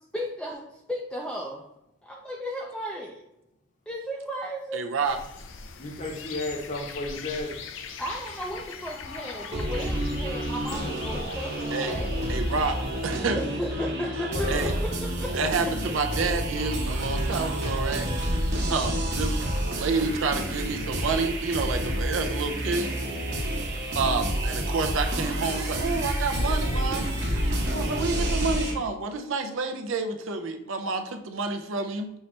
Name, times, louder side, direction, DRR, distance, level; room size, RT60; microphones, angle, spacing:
voice 1, 0.1-1.6 2.0-3.2 3.9-4.8 8.0-12.3 13.3-15.3 15.6-15.7, equal, 5° left, -2 dB, 0.4 m, -35 dB
voice 2, 4.7-5.2 11.7-11.9 12.3-12.8 13.0-13.4 14.5-14.7 15.3-18.1 18.6-22.9 24.0-27.1 27.7-32.1, right 4 dB, 75° right, 6 dB, 0.5 m, -29 dB
sound 1, 5.0-13.2, left 5 dB, 70° left, 0.5 m, -41 dB
voice 3, 5.8-7.6 14.3-14.7, left 2 dB, 40° left, 1 dB, 0.9 m, -32 dB
sound 2, 9.5-28.7, equal, 55° right, 1.1 m, -29 dB
5.6 x 2.8 x 3.2 m, 0.87 s
head